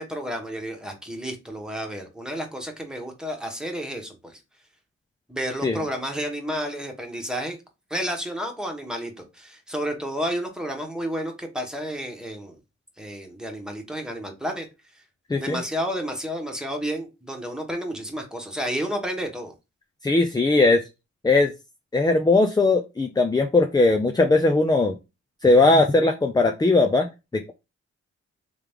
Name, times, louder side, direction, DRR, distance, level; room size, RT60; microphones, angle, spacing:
voice 1, 0.0-4.4 5.3-7.6 7.9-12.6 13.0-14.7 14.9-15.0 15.4-19.5, equal, ahead, 3 dB, 1.3 m, -31 dB
voice 2, 20.0-20.8 21.2-21.5 21.9-24.9 25.4-27.1 27.3-27.5, left 2 dB, 15° left, 5 dB, 0.5 m, -19 dB
3.4 x 3.0 x 3.6 m, 0.26 s
cardioid pair, 55°, 30 cm